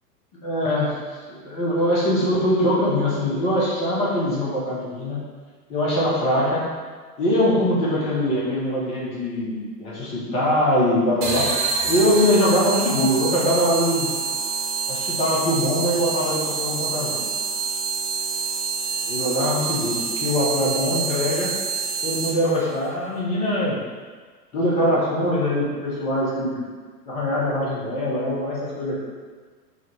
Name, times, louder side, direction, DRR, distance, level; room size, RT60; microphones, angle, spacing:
voice 1, 0.4-1.0 1.3-5.2 5.7-6.6 7.2-14.1 14.9-17.2 19.0-21.5 22.0-23.8 24.5-26.6 27.0-29.0, left 1 dB, 15° left, -5 dB, 0.5 m, -22 dB
sound 1, 11.2-22.6, right 5 dB, 60° right, 1.1 m, -27 dB
4.9 x 2.1 x 3.9 m, 1.5 s
figure-of-eight pair, 105°, 50 cm